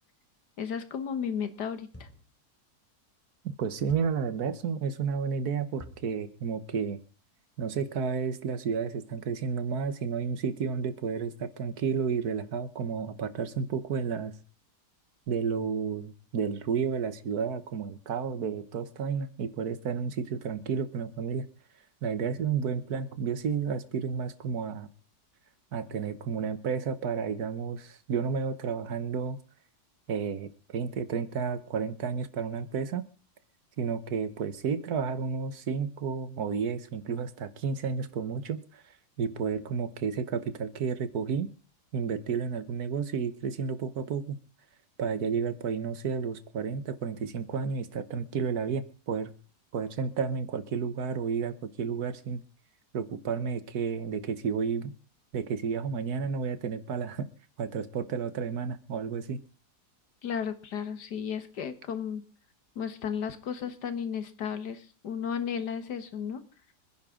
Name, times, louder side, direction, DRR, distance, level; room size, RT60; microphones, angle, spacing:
voice 1, 0.6-2.1 60.2-62.2 62.8-66.4, left 7 dB, 85° left, 11 dB, 2.0 m, -34 dB
sound 1, 1.9-2.4 3.9-4.3 5.8-6.2, left 1 dB, 10° left, 1.9 m, -48 dB
voice 2, 3.4-7.0 7.6-14.3 15.3-21.5 22.0-24.9 25.7-29.4 30.1-33.0 33.8-38.8 39.2-41.5 41.9-44.4 45.0-49.3 49.7-52.4 52.9-54.9 55.3-57.3 57.6-59.4, right 6 dB, 70° right, 13 dB, 1.6 m, -31 dB
26.0 x 10.5 x 3.8 m, 0.37 s
omnidirectional pair, 1.7 m